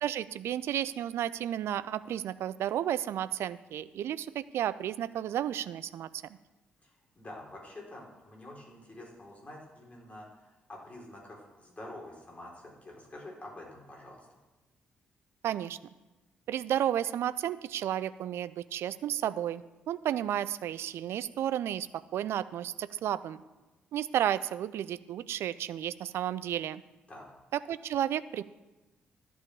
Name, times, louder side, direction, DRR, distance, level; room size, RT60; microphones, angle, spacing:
voice 1, 0.0-6.1 15.4-15.8 16.5-21.9 22.1-23.4 23.9-26.8 27.5-28.4, right 11 dB, 60° right, 16 dB, 0.4 m, -32 dB
voice 2, 6.8-14.3 27.1-27.3, left 1 dB, 30° left, -2 dB, 4.3 m, -47 dB
11.0 x 5.6 x 8.2 m, 1.1 s
figure-of-eight pair, 40°, 5 cm